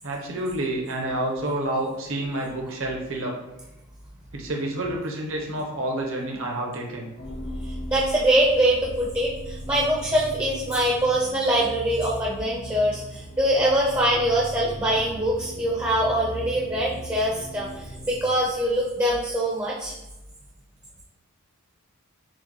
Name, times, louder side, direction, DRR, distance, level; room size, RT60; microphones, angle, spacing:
voice 1, 0.0-3.3 4.3-7.1, right 1 dB, 65° right, 0 dB, 0.9 m, -29 dB
sound 1, 7.2-19.0, equal, 50° left, 0.6 m, -38 dB
voice 2, 7.7-20.0, right 1 dB, 15° right, -4 dB, 0.5 m, -23 dB
6.2 x 2.2 x 3.0 m, 1.0 s
head